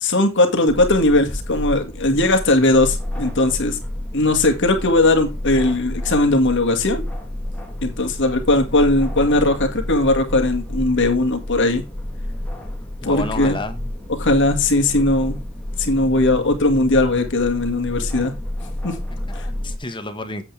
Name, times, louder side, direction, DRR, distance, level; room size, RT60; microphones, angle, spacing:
voice 1, 0.0-3.8 4.1-7.0 7.8-11.8 13.0-13.6 14.1-15.4 15.8-18.3 18.8-19.0 19.3-19.5, left 2 dB, 60° left, 2.0 m, -18 dB
sound 1, 0.7-19.8, left 1 dB, 5° left, 2.2 m, -30 dB
voice 2, 13.0-13.8 19.1-20.4, left 2 dB, 25° left, 1.4 m, -31 dB
8.5 x 8.0 x 3.4 m
head